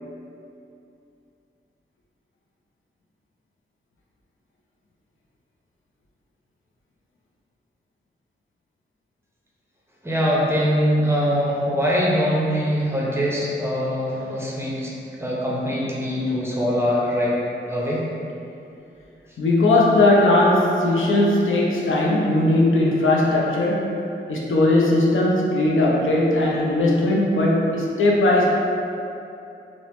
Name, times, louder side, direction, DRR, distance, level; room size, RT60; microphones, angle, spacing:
voice 1, 10.0-14.9 15.2-17.4 17.6-18.0, equal, 10° right, -5 dB, 0.6 m, -22 dB
voice 2, 19.4-24.0 24.3-28.5, left 2 dB, 75° left, -3 dB, 0.5 m, -18 dB
2.9 x 2.0 x 2.9 m, 2.7 s
cardioid pair, 45°, 21 cm